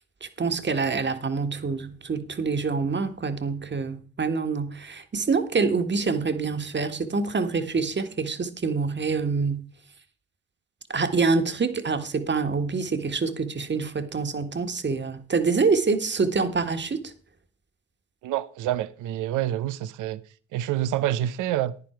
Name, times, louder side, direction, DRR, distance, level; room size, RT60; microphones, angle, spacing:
voice 1, 0.2-9.6 10.9-17.1, right 4 dB, 35° right, 1.6 m, -26 dB
voice 2, 18.2-20.2 20.5-21.7, right 12 dB, 85° right, 0.7 m, -27 dB
10.0 x 10.0 x 4.5 m
supercardioid pair, 50°, 30 cm